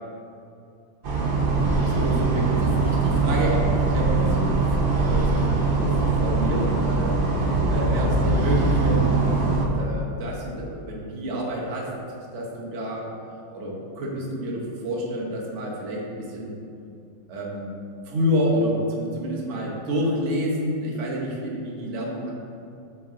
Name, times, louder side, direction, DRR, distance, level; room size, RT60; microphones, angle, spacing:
sound 1, 1.0-9.6, right 3 dB, 70° right, 0.5 m, -22 dB
voice 1, 1.8-7.2 7.7-11.9 12.3-13.0 13.5-16.6 17.3-17.7 18.0-22.3, equal, 45° right, -3 dB, 1.2 m, -28 dB
7.6 x 3.7 x 3.7 m, 2.6 s
omnidirectional pair, 2.0 m